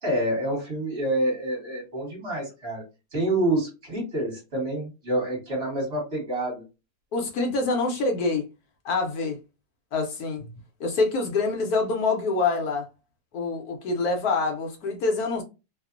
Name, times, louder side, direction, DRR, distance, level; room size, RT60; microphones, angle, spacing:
voice 1, 0.0-2.8 3.1-6.6, right 1 dB, 45° right, 1.2 m, -27 dB
voice 2, 7.1-8.4 8.8-9.4 9.9-10.4 10.8-12.9 13.3-15.4, left 3 dB, 75° left, 1.1 m, -25 dB
2.8 x 2.0 x 2.4 m
omnidirectional pair, 1.7 m